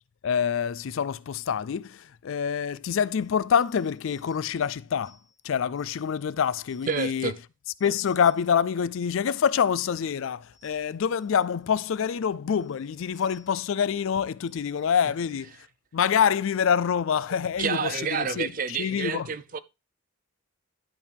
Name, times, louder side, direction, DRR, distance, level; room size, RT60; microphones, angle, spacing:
voice 1, 0.2-5.2 5.4-7.3 7.8-15.5 15.9-19.3, left 7 dB, 65° left, 0.4 m, -26 dB
sound 1, 5.0-6.2 6.6-7.3 7.8-8.6 8.9-10.2 10.5-11.5 11.9-12.1 12.6-13.7 14.4-15.0, left 2 dB, 85° right, 4.8 m, -63 dB
voice 2, 6.9-7.4 17.3-19.6, right 6 dB, 40° right, 0.4 m, -29 dB
10.5 x 3.5 x 4.3 m
head